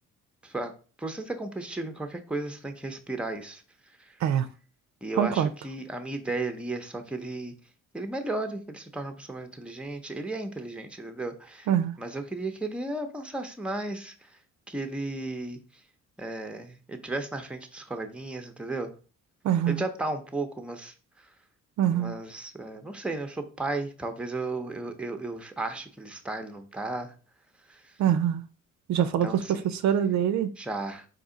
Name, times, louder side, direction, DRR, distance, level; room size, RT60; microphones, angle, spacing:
voice 1, 1.0-3.6 4.0-4.2 5.0-7.5 7.9-11.7 12.0-14.4 14.7-15.6 16.2-18.9 19.7-21.3 21.9-27.1 27.7-27.9 29.2-29.7 30.6-31.1, right 2 dB, 5° right, 0.7 m, -34 dB
voice 2, 5.2-5.5 11.7-11.9 19.4-19.8 21.8-22.1 28.0-28.4 28.9-30.5, right 9 dB, 65° right, 0.5 m, -24 dB
4.1 x 2.7 x 3.8 m
cardioid pair, 90°, 30 cm